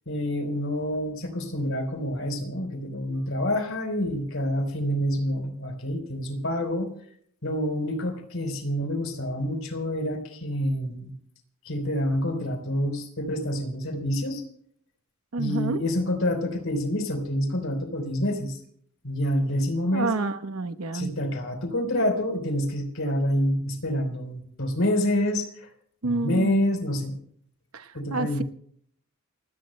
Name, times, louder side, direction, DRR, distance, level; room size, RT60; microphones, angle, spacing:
voice 1, 0.1-6.9 7.4-11.1 11.6-14.4 15.4-18.6 19.0-20.1 20.9-25.7 26.0-27.2 27.9-28.4, left 1 dB, 65° left, 5 dB, 4.0 m, -27 dB
voice 2, 15.3-15.8 19.9-21.1 26.0-26.7 27.7-28.4, right 3 dB, 80° right, 11 dB, 1.0 m, -29 dB
29.0 x 18.0 x 2.2 m, 0.64 s
head